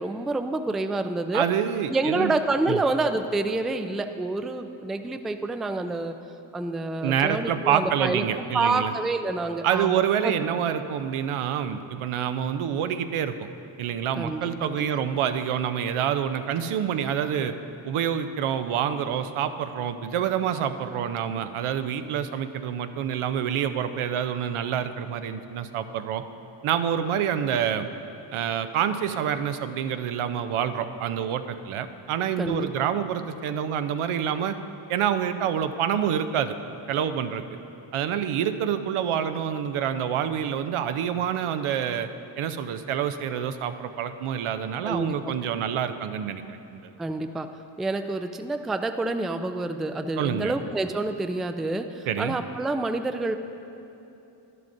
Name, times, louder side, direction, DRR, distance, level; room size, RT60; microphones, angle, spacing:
voice 1, 0.0-1.5 1.9-6.1 6.5-8.2 8.5-10.3 14.2-14.9 32.4-32.9 44.8-45.3 47.0-47.5 47.8-53.4, right 2 dB, ahead, 7 dB, 0.3 m, -28 dB
voice 2, 1.3-2.3 2.7-2.8 7.0-8.9 9.6-13.5 13.8-17.5 17.8-26.2 26.6-27.9 28.3-34.5 34.9-36.6 36.9-37.4 37.9-42.1 42.4-46.8 50.2-50.5 52.1-52.4, right 9 dB, 75° right, 9 dB, 0.6 m, -27 dB
11.5 x 11.0 x 2.6 m, 2.9 s
supercardioid pair, 50°, 50 cm